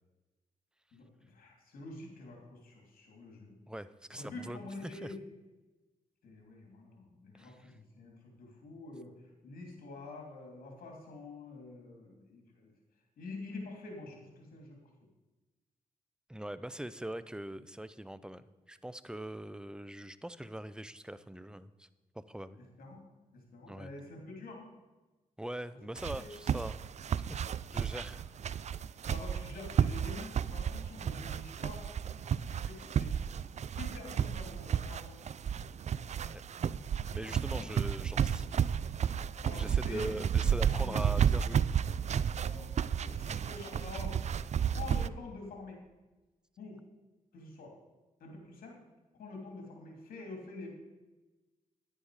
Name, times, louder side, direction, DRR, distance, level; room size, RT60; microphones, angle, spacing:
voice 1, 0.9-3.5 4.2-5.2 6.2-12.7 13.2-14.8 22.6-23.0 23.3-24.7 26.2-26.4 29.0-32.0 32.4-33.2 33.8-35.2 37.4-37.7 39.4-41.2 42.4-42.7 43.0-44.2 44.7-45.8 46.6-46.8 47.3-47.8 48.2-48.8 49.2-50.7, left 3 dB, 85° left, 1 dB, 2.9 m, -47 dB
voice 2, 3.7-5.1 7.4-7.7 16.3-21.9 22.1-22.6 23.7-23.9 25.4-26.7 27.3-27.5 27.7-28.3 36.2-36.4 37.1-38.6 39.6-41.6, right 1 dB, 5° right, 14 dB, 0.6 m, -42 dB
sound 1, 26.0-45.1, right 8 dB, 50° right, 0.4 m, -32 dB
10.5 x 10.0 x 4.9 m, 1.2 s
cardioid pair, 60°, 15 cm